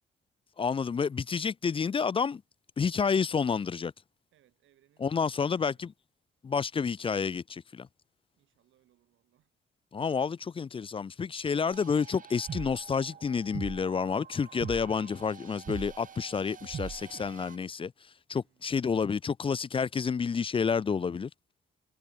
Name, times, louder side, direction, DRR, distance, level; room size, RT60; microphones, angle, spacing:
voice 1, 0.6-2.4 2.8-3.9 5.0-5.9 6.4-7.9 9.9-17.9 18.3-21.3, left 6 dB, 25° left, 0.4 m, -29 dB
voice 2, 4.3-5.9 8.3-9.5 18.4-19.0, right 13 dB, 80° right, 7.3 m, -69 dB
sound 1, 11.7-17.6, right 7 dB, 40° right, 1.0 m, -43 dB
cardioid pair, 90°, 20 cm